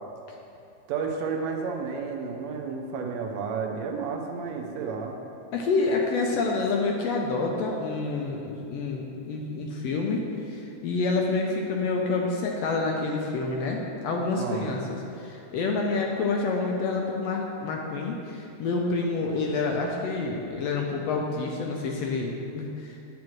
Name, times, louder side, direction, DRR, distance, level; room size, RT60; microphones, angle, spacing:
voice 1, 0.9-5.2 14.4-14.9, right 5 dB, 75° right, 2 dB, 1.8 m, -31 dB
voice 2, 5.5-23.0, left 3 dB, 75° left, 0 dB, 1.6 m, -28 dB
9.3 x 8.4 x 3.1 m, 2.7 s
omnidirectional pair, 3.5 m